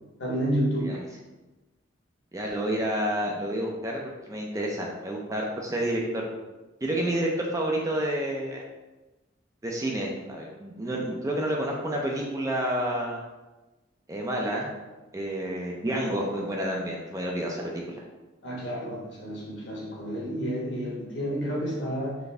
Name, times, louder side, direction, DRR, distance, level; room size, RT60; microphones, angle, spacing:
voice 1, 0.2-0.9 18.4-22.2, equal, 65° left, -3 dB, 1.1 m, -30 dB
voice 2, 2.3-4.0 4.3-6.2 6.8-8.6 9.6-13.2 14.1-14.7 15.1-17.8, right 1 dB, 15° right, -1 dB, 0.4 m, -29 dB
4.0 x 2.6 x 3.3 m, 1.1 s
head